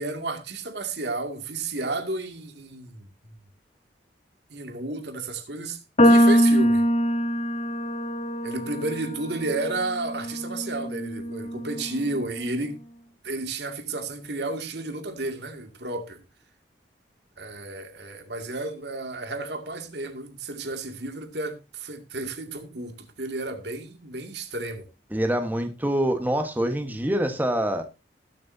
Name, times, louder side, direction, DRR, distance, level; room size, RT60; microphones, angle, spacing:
voice 1, 0.0-3.1 4.5-6.8 8.4-12.8 13.2-16.2 17.4-24.9, right 2 dB, 65° right, 2.3 m, -32 dB
sound 1, 6.0-12.3, equal, 40° left, 2.4 m, -23 dB
voice 2, 25.1-27.8, right 1 dB, 10° right, 1.3 m, -25 dB
19.5 x 7.6 x 2.7 m
head